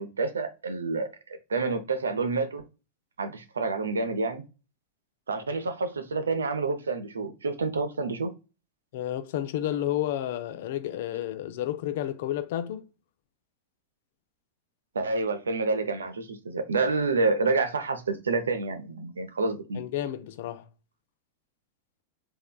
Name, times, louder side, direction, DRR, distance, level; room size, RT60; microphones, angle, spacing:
voice 1, 0.0-2.6 3.2-4.4 5.3-8.3 14.9-19.8, right 3 dB, 70° right, 0.6 m, -28 dB
voice 2, 8.9-12.9 19.8-20.6, left 12 dB, 55° left, 0.4 m, -31 dB
3.7 x 3.2 x 2.2 m
figure-of-eight pair, 90°, 0 cm